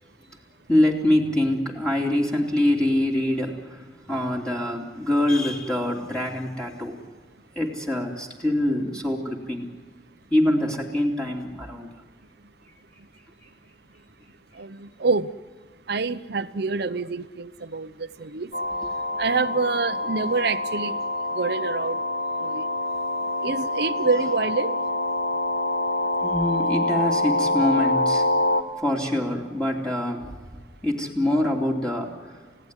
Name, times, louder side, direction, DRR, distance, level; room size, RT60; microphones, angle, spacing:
voice 1, 0.7-7.0 7.5-9.7 10.3-11.9 26.2-28.2 28.8-30.3 30.8-32.1, left 1 dB, 5° left, -2 dB, 2.8 m, -24 dB
voice 2, 14.5-15.3 15.9-18.5 19.1-21.0 21.3-22.0 22.4-22.7 23.4-24.8, right 4 dB, 65° right, 13 dB, 0.9 m, -27 dB
sound 1, 18.5-28.6, left 1 dB, 70° left, 1.7 m, -26 dB
29.5 x 17.0 x 9.8 m, 1.5 s
head